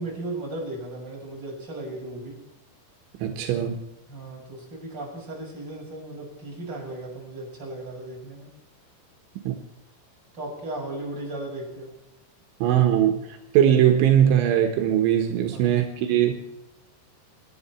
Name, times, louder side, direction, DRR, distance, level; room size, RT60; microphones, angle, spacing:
voice 1, 0.0-2.4 4.1-8.5 10.3-11.9 15.5-15.6, right 2 dB, 20° right, -2 dB, 6.6 m, -36 dB
voice 2, 3.2-3.8 9.5-9.6 12.6-16.3, right 10 dB, 80° right, 4 dB, 3.8 m, -20 dB
27.0 x 11.0 x 4.5 m, 0.92 s
omnidirectional pair, 5.6 m